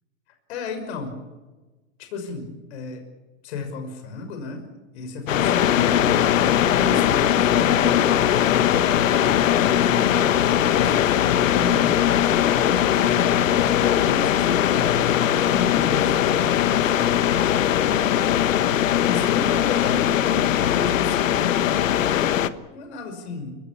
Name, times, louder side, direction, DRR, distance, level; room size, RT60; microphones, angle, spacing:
voice 1, 0.5-1.1 2.0-3.0 3.4-4.6 4.9-6.5 6.8-8.2 8.9-18.3 19.0-22.4 22.7-23.5, left 3 dB, 60° left, 5 dB, 5.8 m, -34 dB
sound 1, 5.3-22.5, left 10 dB, 90° left, 1.4 m, -20 dB
29.0 x 17.0 x 8.6 m, 1.2 s
supercardioid pair, 160°, 38 cm